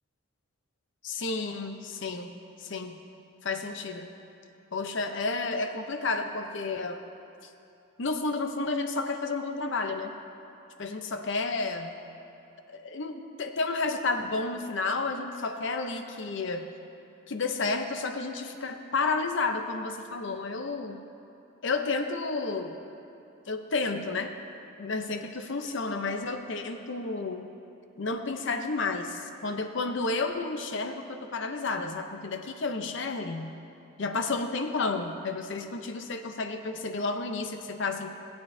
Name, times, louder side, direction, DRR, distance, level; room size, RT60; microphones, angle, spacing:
voice 1, 1.0-3.0 3.4-4.1 4.7-7.0 7.4-7.5 8.0-10.2 10.8-11.9 12.7-16.7 17.3-21.0 21.6-22.8 23.5-24.3 24.8-27.5 28.0-33.5 34.0-38.2, left 3 dB, 55° left, 6 dB, 0.7 m, -31 dB
19.0 x 9.1 x 2.7 m, 2.8 s
head